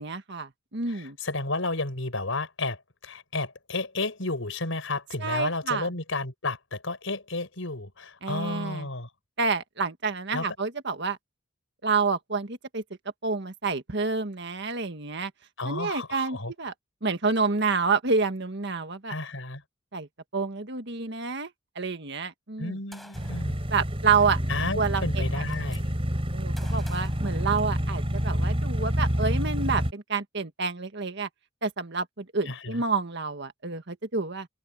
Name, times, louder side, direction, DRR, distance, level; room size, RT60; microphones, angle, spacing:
voice 1, 0.0-1.2 5.2-5.9 8.2-8.9 9.4-11.2 11.8-12.8 13.2-15.3 15.7-16.7 17.0-19.1 19.9-20.1 20.3-21.5 21.8-22.8 23.7-24.4 24.7-25.5 26.3-31.3 31.6-34.5, right 4 dB, 60° right, 1.7 m, -28 dB
voice 2, 0.9-9.1 10.3-10.5 15.6-16.5 19.1-19.6 22.6-23.5 24.5-25.9 32.4-32.8, left 2 dB, 80° left, 5.0 m, -32 dB
Gunshot gunfire, 22.9-23.5 24.7-24.8 25.1-25.8 26.6-28.0, equal, ahead, 7.0 m, -49 dB
sound 1, 23.1-29.9, equal, 30° right, 4.8 m, -28 dB
head